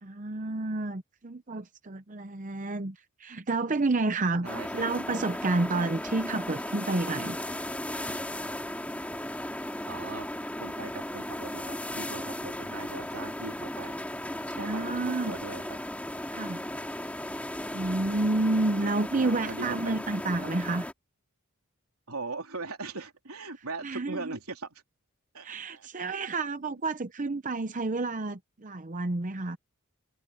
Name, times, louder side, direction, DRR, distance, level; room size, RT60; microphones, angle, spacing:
voice 1, 0.0-4.5 4.8-7.4 14.6-15.4 16.3-16.6 17.7-20.9 23.8-24.3 25.4-29.6, right 2 dB, 35° right, 0.7 m, -30 dB
sound 1, 4.4-20.9, left 1 dB, 5° left, 2.6 m, -36 dB
voice 2, 4.4-4.9 9.9-10.3 10.6-14.0 14.6-15.8 19.1-20.0 22.1-24.8 25.3-26.2, right 3 dB, 80° right, 3.4 m, -40 dB
head